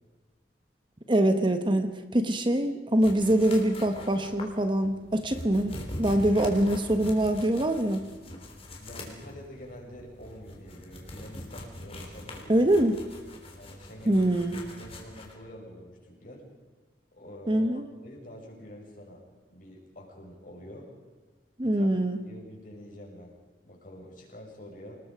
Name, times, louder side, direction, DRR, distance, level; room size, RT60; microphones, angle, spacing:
voice 1, 1.1-8.1 12.5-13.0 14.1-14.6 17.5-17.8 21.6-22.2, right 1 dB, 30° right, 8 dB, 1.2 m, -24 dB
sound 1, 3.0-15.3, left 1 dB, 35° left, 3.6 m, -43 dB
voice 2, 8.8-12.7 13.6-14.3 14.6-16.5 17.1-19.2 19.5-20.9 21.6-21.9 22.2-23.3 23.6-25.0, equal, 50° left, -1 dB, 6.8 m, -47 dB
28.5 x 19.5 x 5.1 m, 1.3 s
head